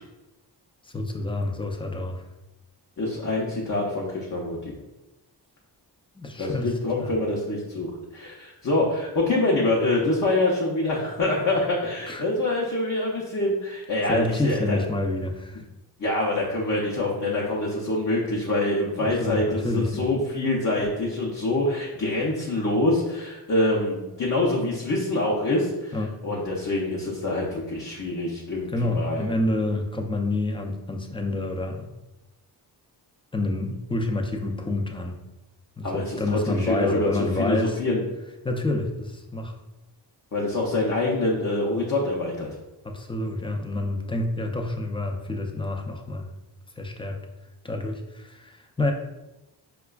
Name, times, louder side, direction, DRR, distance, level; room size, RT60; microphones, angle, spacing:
voice 1, 0.9-2.2 6.2-6.7 7.0-7.1 12.1-12.2 14.1-15.6 19.0-20.1 25.9-26.2 28.7-31.9 33.3-35.2 35.8-37.8 38.4-39.5 42.8-46.3 46.8-47.2 47.6-48.9, left 2 dB, 15° left, 3 dB, 0.4 m, -28 dB
voice 2, 3.0-4.6 6.4-7.9 8.1-14.8 16.0-26.0 26.2-29.3 35.8-37.1 37.4-38.0 40.3-42.5, left 2 dB, 45° left, -3 dB, 0.7 m, -25 dB
4.7 x 2.3 x 2.3 m, 1.0 s
cardioid pair, 70°, 43 cm